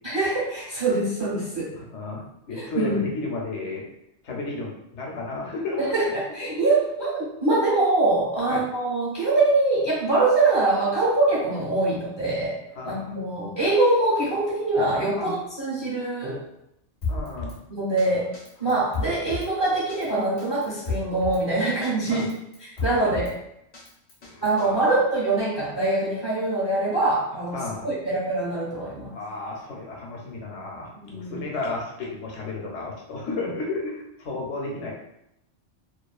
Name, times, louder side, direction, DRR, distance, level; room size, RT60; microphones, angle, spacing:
voice 1, 0.0-1.7 2.6-3.0 5.8-12.6 12.8-16.4 17.7-18.3 18.6-22.3 22.6-23.3 24.4-29.1 31.0-31.4, right 2 dB, 25° right, -8 dB, 0.7 m, -24 dB
voice 2, 1.7-3.9 4.2-6.1 8.5-8.7 12.8-13.1 15.2-15.4 17.1-17.6 18.6-18.7 22.0-22.3 22.8-23.1 24.2-25.0 27.5-27.9 29.1-34.9, left 3 dB, 70° left, -1 dB, 1.0 m, -33 dB
Drum kit, 17.0-17.6 18.0-18.1 18.3-19.5 19.9-20.1 20.4-21.4 21.8-21.9 22.2-23.3 23.7-24.7, left 3 dB, 45° left, 0.6 m, -32 dB
2.6 x 2.4 x 2.3 m, 0.80 s
omnidirectional pair, 1.3 m